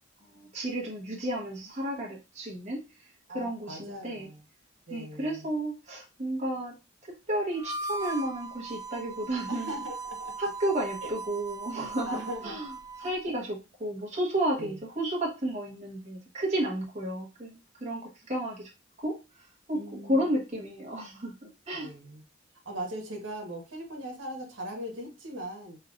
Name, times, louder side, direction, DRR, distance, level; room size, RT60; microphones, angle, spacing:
voice 1, 0.2-3.1 3.3-4.3 4.9-6.7 7.0-9.7 10.4-12.2 12.4-12.7 13.0-18.7 19.0-19.2 19.7-21.9, right 1 dB, 35° right, -3 dB, 1.2 m, -32 dB
voice 2, 3.3-4.4 4.9-5.4 9.5-10.3 11.0-11.1 12.1-12.6 14.6-14.7 19.7-20.2 21.8-22.2 22.6-25.8, right 1 dB, 80° right, 1 dB, 1.3 m, -39 dB
Harmonica, 7.5-13.2, right 3 dB, 20° right, 0.4 m, -39 dB
5.5 x 3.2 x 2.4 m, 0.27 s
head